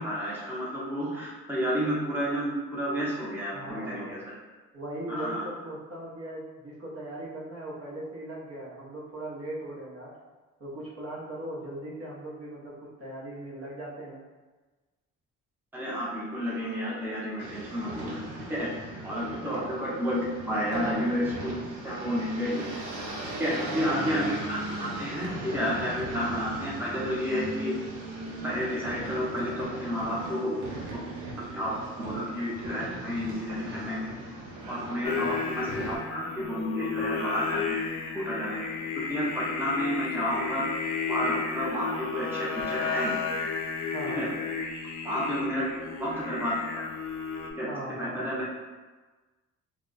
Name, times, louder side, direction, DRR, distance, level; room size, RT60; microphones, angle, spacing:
voice 1, 0.0-4.3 5.1-5.4 15.7-18.2 18.5-18.7 19.0-22.8 23.4-27.7 28.4-31.0 31.5-34.1 34.7-37.8 38.1-38.6 38.9-40.7 41.1-43.1 44.2-44.3 45.0-45.7 46.0-46.8 47.6-47.7 48.0-48.5, equal, 5° right, -6 dB, 0.7 m, -31 dB
voice 2, 3.5-4.2 4.7-10.1 10.6-14.2 19.4-19.7 23.6-24.4 35.2-35.4 43.9-44.3 47.7-48.4, right 1 dB, 50° right, -5 dB, 0.9 m, -39 dB
sound 1, 17.4-36.0, right 1 dB, 85° right, 0.8 m, -38 dB
Singing, 35.0-47.5, left 5 dB, 85° left, 0.5 m, -33 dB
2.3 x 2.2 x 3.8 m, 1.3 s
cardioid pair, 90°, 30 cm